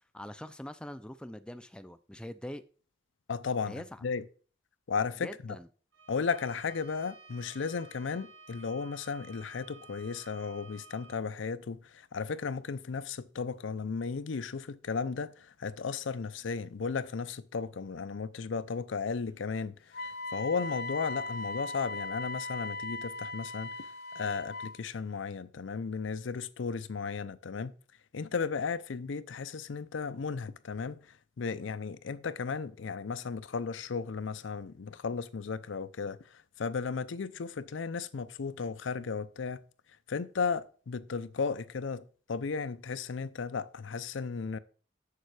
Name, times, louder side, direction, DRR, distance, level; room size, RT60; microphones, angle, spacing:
voice 1, 0.1-2.6 3.7-4.1 5.2-5.7, left 1 dB, 5° left, 0.4 m, -43 dB
voice 2, 3.3-4.2 4.9-5.6 6.1-23.9 24.1-27.7 28.1-39.6 40.1-44.6, left 5 dB, 80° left, 0.5 m, -35 dB
Bowed string instrument, 5.9-11.2, right 3 dB, 85° right, 1.3 m, -53 dB
Wind instrument woodwind instrument, 19.9-24.8, left 2 dB, 55° left, 0.8 m, -39 dB
6.8 x 6.7 x 4.8 m
head